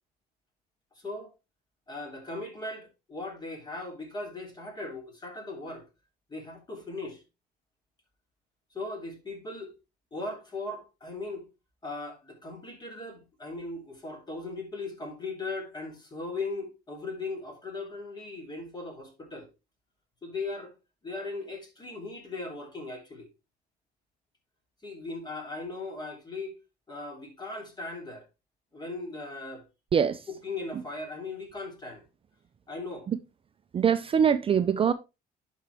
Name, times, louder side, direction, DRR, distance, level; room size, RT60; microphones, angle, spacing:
voice 1, 0.9-1.3 1.9-5.8 6.3-7.2 8.7-9.7 10.1-11.5 11.8-19.5 20.2-20.8 21.0-23.3 24.8-26.5 26.9-28.2 28.7-29.6 30.3-32.0 32.7-33.1, left 3 dB, 25° left, 3.2 m, -38 dB
voice 2, 29.9-30.3 33.1-33.2 33.7-34.9, right 7 dB, 35° right, 0.5 m, -23 dB
11.0 x 4.7 x 3.4 m
cardioid pair, 110°, 17 cm